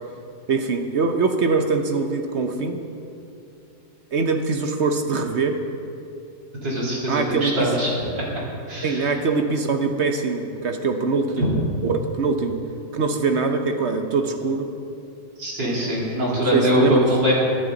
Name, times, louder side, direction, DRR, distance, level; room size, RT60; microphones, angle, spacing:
voice 1, 0.5-2.8 4.1-5.6 7.1-7.8 8.8-11.5 11.8-12.6 12.9-14.7 16.4-17.1, right 4 dB, 55° right, 5 dB, 0.8 m, -23 dB
voice 2, 6.6-7.9 8.2-8.3 8.7-9.1 11.4-11.5 15.4-17.3, equal, 75° right, -5 dB, 3.9 m, -22 dB
23.5 x 8.9 x 3.9 m, 2.6 s
omnidirectional pair, 2.0 m